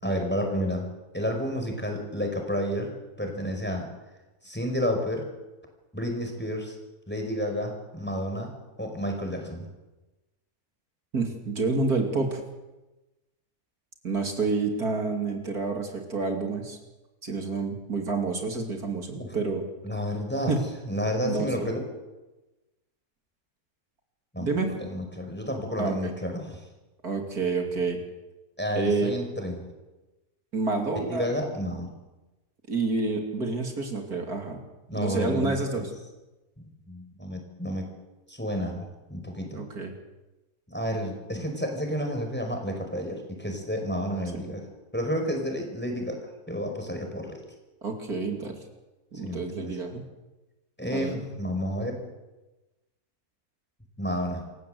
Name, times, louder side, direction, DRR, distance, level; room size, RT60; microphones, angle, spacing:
voice 1, 0.0-0.9 1.1-3.9 4.4-5.2 5.9-6.8 7.1-8.5 8.8-9.7 19.2-19.3 19.8-20.5 20.9-21.8 24.3-24.5 24.8-26.6 28.6-29.7 31.1-31.9 34.9-35.8 36.6-37.9 38.3-39.6 40.7-44.6 44.9-47.4 49.2-49.7 50.8-52.0 54.0-54.4, equal, 5° left, 3 dB, 5.1 m, -31 dB
voice 2, 11.1-12.4 14.0-16.8 17.2-19.6 20.5-20.6 21.2-21.7 24.4-24.7 25.8-26.1 27.0-28.0 28.8-29.2 30.5-31.3 32.7-34.6 34.9-35.8 39.5-39.9 44.3-44.4 47.8-48.6 49.1-50.0 50.9-51.3, right 3 dB, 75° right, 3 dB, 3.2 m, -28 dB
27.5 x 16.0 x 7.9 m, 1.1 s
omnidirectional pair, 1.6 m